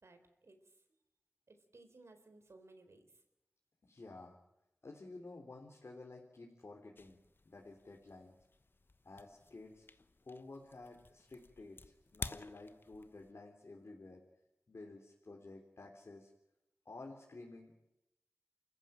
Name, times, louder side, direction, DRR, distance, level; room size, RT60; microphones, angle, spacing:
voice 1, 0.0-0.8 1.5-3.1, right 2 dB, 75° right, 7 dB, 3.9 m, -60 dB
voice 2, 3.8-4.4 4.8-7.2 7.5-8.3 9.0-9.8 10.2-14.2 14.7-16.3 16.9-17.8, left 2 dB, 70° left, -1 dB, 3.7 m, -52 dB
sound 1, 7.0-13.3, left 3 dB, 50° left, 1.0 m, -51 dB
28.0 x 15.0 x 9.2 m, 0.88 s
wide cardioid pair, 55°, 5 cm